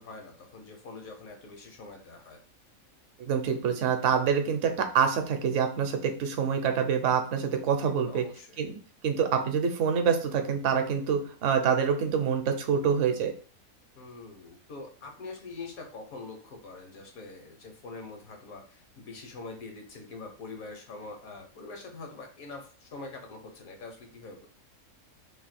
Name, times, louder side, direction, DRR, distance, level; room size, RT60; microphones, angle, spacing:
voice 1, 0.0-2.4 8.1-8.6 14.0-24.5, left 3 dB, 75° left, 4 dB, 1.3 m, -44 dB
voice 2, 3.2-8.2 8.6-8.8 9.0-13.3, right 7 dB, 65° right, 6 dB, 0.9 m, -26 dB
3.0 x 2.7 x 4.1 m, 0.42 s
omnidirectional pair, 1.5 m